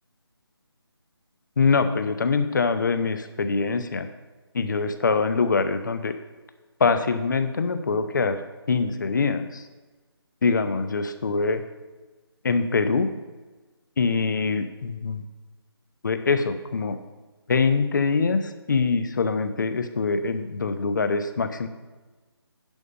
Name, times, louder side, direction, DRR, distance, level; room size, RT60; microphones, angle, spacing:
voice 1, 1.6-4.1 4.5-6.1 6.8-8.4 8.7-9.6 10.4-11.6 12.4-13.1 14.0-15.2 16.0-17.0 17.5-21.7, left 4 dB, 45° left, 9 dB, 0.8 m, -24 dB
10.5 x 5.6 x 5.2 m, 1.2 s
figure-of-eight pair, 165°, 14 cm